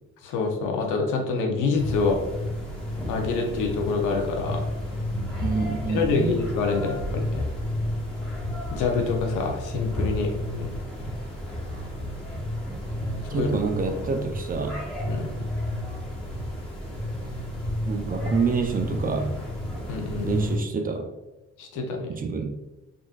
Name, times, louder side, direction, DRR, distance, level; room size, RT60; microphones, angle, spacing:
voice 1, 0.2-2.2 3.1-4.6 5.9-7.4 8.7-10.7 13.2-13.5 15.1-15.3 19.9-20.3 21.6-22.1, left 4 dB, 85° left, 2 dB, 0.7 m, -26 dB
sound 1, 1.8-20.6, left 1 dB, 5° left, 1.2 m, -31 dB
voice 2, 5.4-6.5 13.3-14.8 17.9-19.4 20.2-21.1 22.1-22.6, right 4 dB, 30° right, 6 dB, 0.4 m, -27 dB
3.7 x 2.6 x 2.4 m, 1.0 s
cardioid pair, 90°, 30 cm